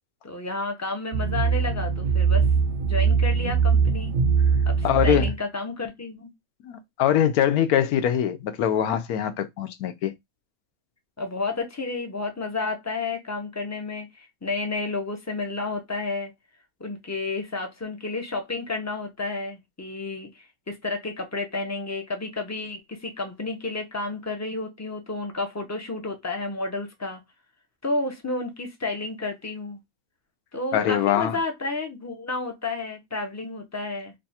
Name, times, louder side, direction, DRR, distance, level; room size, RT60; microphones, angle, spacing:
voice 1, 0.2-2.5 2.8-4.2 4.7-6.3 11.2-16.3 16.8-27.2 27.8-29.8 30.5-34.1, left 3 dB, 20° left, 0.4 m, -31 dB
sound 1, 1.1-5.3, right 6 dB, 65° right, 0.5 m, -22 dB
voice 2, 4.8-5.3 6.6-10.1 30.7-31.4, left 10 dB, 80° left, 1.1 m, -23 dB
3.3 x 2.4 x 4.1 m
omnidirectional pair, 1.5 m